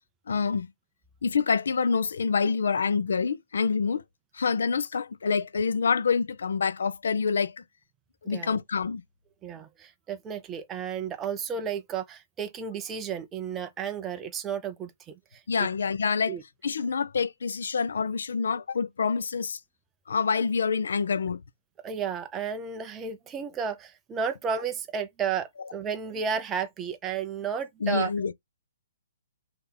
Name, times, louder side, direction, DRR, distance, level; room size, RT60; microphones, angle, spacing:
voice 1, 0.3-0.7 1.2-4.0 4.3-7.6 8.2-9.0 15.5-16.4 16.6-19.6 20.1-21.4 27.8-28.3, left 5 dB, 65° left, 0.5 m, -26 dB
voice 2, 8.2-8.6 9.4-15.7 16.3-16.4 21.8-28.1, right 7 dB, 10° right, 0.4 m, -33 dB
3.4 x 2.8 x 3.9 m
hypercardioid pair, 180°, 0 cm